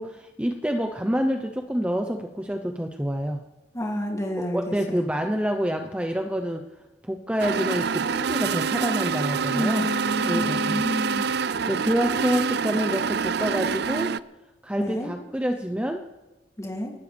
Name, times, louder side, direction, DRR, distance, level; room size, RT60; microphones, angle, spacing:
voice 1, 0.0-3.4 4.4-6.6 7.0-9.9 10.2-10.8 11.7-14.2 14.6-16.0, equal, 5° right, 4 dB, 0.8 m, -27 dB
voice 2, 3.7-5.0 9.5-11.3 14.8-15.1 16.6-16.9, equal, 20° left, -1 dB, 2.8 m, -29 dB
sound 1, 7.4-14.2, right 6 dB, 65° right, 0.5 m, -26 dB
29.5 x 12.5 x 3.5 m, 1.1 s
head